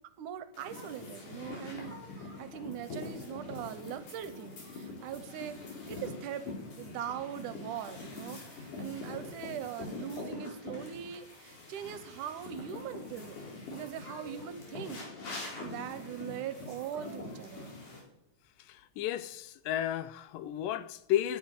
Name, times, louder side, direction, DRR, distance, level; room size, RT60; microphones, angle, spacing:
voice 1, 0.2-5.6 5.9-13.4 13.7-17.8, right 10 dB, 75° right, 2.2 m, -41 dB
sound 1, 0.5-18.0, left 3 dB, 65° left, 5.0 m, -44 dB
voice 2, 18.7-21.4, left 11 dB, 85° left, 2.3 m, -33 dB
10.0 x 9.8 x 9.7 m
omnidirectional pair, 3.9 m